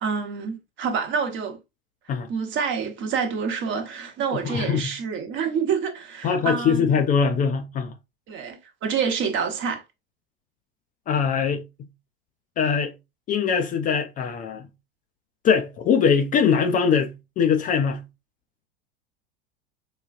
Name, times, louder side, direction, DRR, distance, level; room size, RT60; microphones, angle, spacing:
voice 1, 0.0-1.6 2.3-6.9 8.3-9.8, right 6 dB, 40° right, 0.9 m, -27 dB
voice 2, 4.3-4.9 6.2-7.9 11.1-11.6 12.6-12.9 13.3-14.7 15.4-18.0, left 6 dB, 25° left, 0.4 m, -22 dB
4.8 x 2.3 x 2.4 m
figure-of-eight pair, 80°, 31 cm